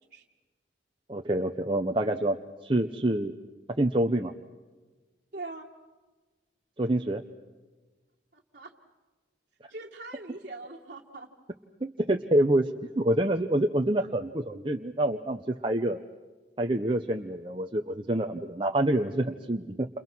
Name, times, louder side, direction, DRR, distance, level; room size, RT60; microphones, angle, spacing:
voice 1, 1.1-3.3 3.8-4.3 6.8-7.2 11.8-12.7 13.0-16.0 16.6-19.9, right 1 dB, 25° right, 3 dB, 0.9 m, -27 dB
voice 2, 5.3-5.7 8.3-8.7 9.7-11.3, right 2 dB, 45° right, -3 dB, 2.2 m, -42 dB
30.0 x 28.5 x 6.2 m, 1.3 s
head